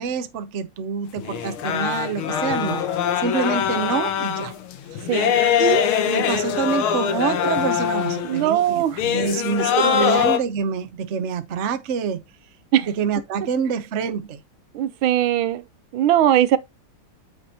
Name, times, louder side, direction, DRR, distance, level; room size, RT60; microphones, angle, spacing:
voice 1, 0.0-2.8 3.2-4.5 4.9-5.1 5.6-12.2 12.9-14.4, right 6 dB, 50° right, 0.8 m, -26 dB
sound 1, 1.2-8.5 9.0-10.4, left 8 dB, 85° left, 1.8 m, -22 dB
voice 2, 8.2-9.0 12.7-12.9 14.7-15.6 15.9-16.6, right 11 dB, 80° right, 1.4 m, -19 dB
8.5 x 6.1 x 2.8 m
omnidirectional pair, 2.3 m